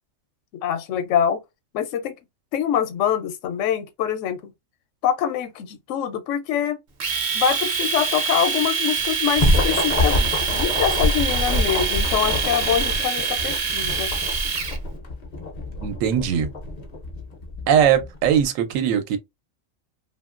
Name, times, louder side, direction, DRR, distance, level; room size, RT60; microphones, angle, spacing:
voice 1, 0.6-1.4 1.7-2.1 2.5-4.5 5.0-6.8 7.3-14.1, left 9 dB, 70° left, 0.9 m, -24 dB
Domestic sounds home sounds, 7.0-14.8, right 6 dB, 45° right, 0.6 m, -25 dB
sound 1, 9.0-18.4, left 1 dB, 45° left, 0.5 m, -26 dB
voice 2, 15.8-16.5 17.7-19.2, right 8 dB, 80° right, 1.0 m, -20 dB
2.8 x 2.5 x 2.4 m
omnidirectional pair, 1.4 m